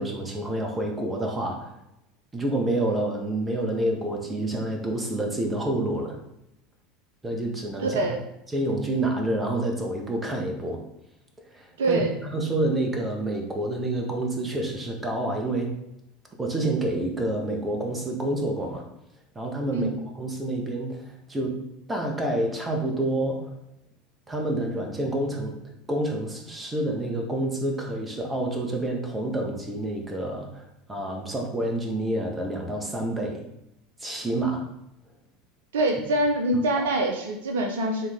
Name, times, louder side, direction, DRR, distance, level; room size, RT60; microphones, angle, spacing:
voice 1, 0.0-1.7 2.3-6.2 7.2-8.0 8.5-10.8 11.5-15.7 16.4-18.8 19.3-19.9 20.1-21.6 21.9-23.5 24.3-25.6 25.9-33.5 34.0-34.7 36.8-36.9, right 1 dB, 15° right, 2 dB, 1.6 m, -28 dB
voice 2, 7.8-8.2 11.8-12.1 19.7-19.9 35.7-38.1, right 1 dB, 65° right, 3 dB, 0.8 m, -24 dB
9.6 x 3.8 x 3.8 m, 0.86 s
figure-of-eight pair, 75°, 0 cm